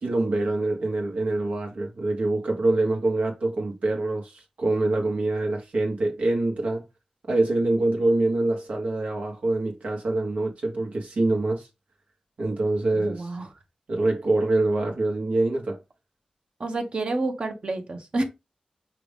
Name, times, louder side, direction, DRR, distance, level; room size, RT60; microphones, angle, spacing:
voice 1, 0.0-6.8 7.3-11.7 12.4-13.3 13.9-15.8, right 2 dB, 85° right, 1.5 m, -25 dB
voice 2, 13.0-13.5 16.6-18.2, right 2 dB, 55° right, 1.1 m, -29 dB
5.8 x 2.6 x 3.5 m
wide cardioid pair, 80°, 2 cm